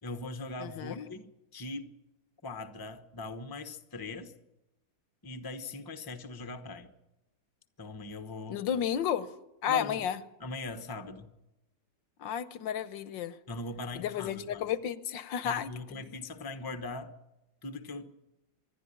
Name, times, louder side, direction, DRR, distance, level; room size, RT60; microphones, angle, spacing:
voice 1, 0.0-1.9 2.4-4.3 5.2-6.9 7.8-8.6 9.7-10.0 10.4-11.3 13.5-14.7 15.4-17.1 17.6-18.1, left 2 dB, 15° left, 0.9 m, -40 dB
voice 2, 0.6-1.0 8.5-9.3 9.6-10.2 12.2-13.4 13.9-16.1, left 9 dB, 85° left, 1.6 m, -32 dB
25.0 x 11.5 x 9.9 m
omnidirectional pair, 2.0 m